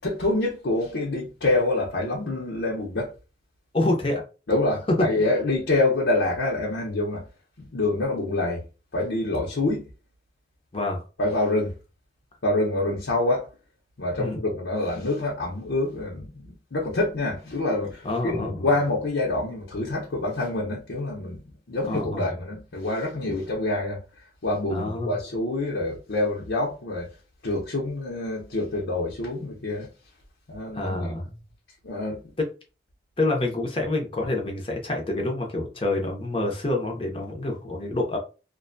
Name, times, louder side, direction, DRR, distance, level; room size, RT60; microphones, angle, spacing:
voice 1, 0.0-3.1 4.5-7.3 7.6-8.7 8.9-9.9 11.2-11.7 12.4-13.5 14.0-24.0 24.4-27.1 27.4-29.9 30.5-31.1 31.8-32.3, left 2 dB, 85° left, 0.7 m, -26 dB
voice 2, 3.7-4.2 10.7-11.0 14.2-14.4 18.0-18.7 21.9-22.3 23.3-23.4 24.7-25.1 30.7-31.3 32.4-32.5 33.2-38.2, left 2 dB, 30° left, 0.6 m, -27 dB
2.6 x 2.2 x 2.5 m
head